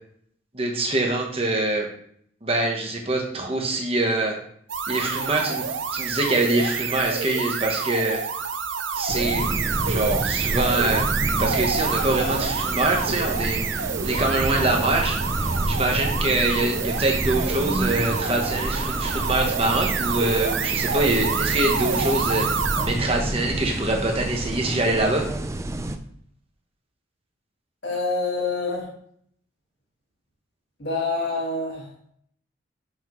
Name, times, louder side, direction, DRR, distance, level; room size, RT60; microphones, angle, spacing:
voice 1, 0.5-1.9 2.4-4.4 4.9-5.6 5.9-8.2 8.9-9.4 9.9-11.0 11.4-22.5 22.8-25.3, right 2 dB, 30° right, 2 dB, 1.1 m, -24 dB
sound 1, 4.7-23.0, right 6 dB, 80° right, 0.6 m, -28 dB
sound 2, 9.1-26.0, right 1 dB, 15° right, 0.4 m, -29 dB
voice 2, 27.8-28.9 30.8-31.9, left 3 dB, 60° left, -2 dB, 1.8 m, -26 dB
6.1 x 5.7 x 3.1 m, 0.64 s
head